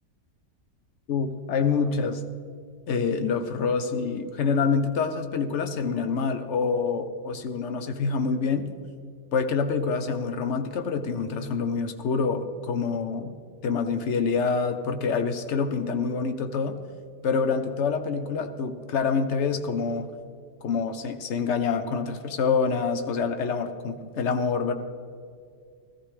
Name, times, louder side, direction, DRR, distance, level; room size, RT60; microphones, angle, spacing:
voice 1, 1.1-2.2 2.9-8.7 9.3-13.3 13.6-16.8 17.2-20.1 20.6-24.7, left 5 dB, 55° left, 8 dB, 1.0 m, -26 dB
14.5 x 14.0 x 3.3 m, 2.3 s
omnidirectional pair, 1.8 m